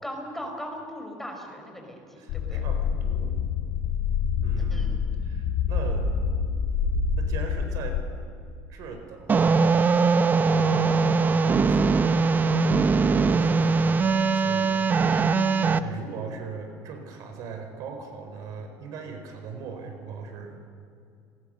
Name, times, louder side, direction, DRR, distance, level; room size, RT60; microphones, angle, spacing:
voice 1, 0.0-2.6 4.6-5.0 15.1-15.6, equal, 5° left, 2 dB, 5.0 m, -39 dB
voice 2, 2.2-3.4 4.4-4.9 5.2-6.1 7.2-8.0 8.7-12.3 13.1-14.9 15.2-20.6, right 5 dB, 60° right, 5 dB, 4.6 m, -39 dB
sound 1, 2.3-8.0, left 6 dB, 65° left, 2.8 m, -26 dB
sound 2, 9.3-15.8, right 4 dB, 25° right, 0.9 m, -21 dB
30.0 x 21.0 x 6.6 m, 2.4 s
cardioid pair, 120°, 7 cm